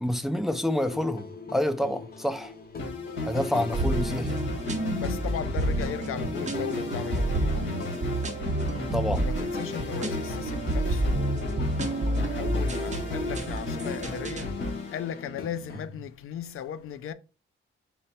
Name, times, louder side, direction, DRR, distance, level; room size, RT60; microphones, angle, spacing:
voice 1, 0.0-2.5 3.3-4.4 8.9-9.3, left 1 dB, ahead, 0.3 m, -28 dB
sound 1, 0.8-15.8, left 3 dB, 45° left, 0.7 m, -43 dB
sound 2, 2.8-15.7, left 2 dB, 60° left, 1.4 m, -34 dB
sound 3, 3.7-14.5, right 1 dB, 35° right, 0.7 m, -30 dB
voice 2, 5.0-7.9 9.2-17.1, left 9 dB, 90° left, 0.4 m, -37 dB
4.2 x 2.0 x 4.1 m
wide cardioid pair, 140°, 21 cm